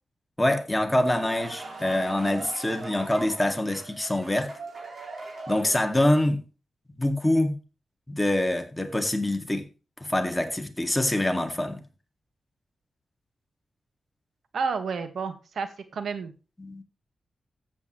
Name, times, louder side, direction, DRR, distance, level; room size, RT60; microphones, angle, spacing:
voice 1, 0.4-4.5 5.5-6.4 7.0-7.5 8.1-9.7 10.0-11.8 16.6-16.8, left 1 dB, 15° left, 2.0 m, -25 dB
sound 1, 0.7-6.1, right 3 dB, 55° right, 4.3 m, -40 dB
voice 2, 14.5-16.3, right 5 dB, 75° right, 1.5 m, -31 dB
14.0 x 8.3 x 3.1 m
cardioid pair, 75°, 0 cm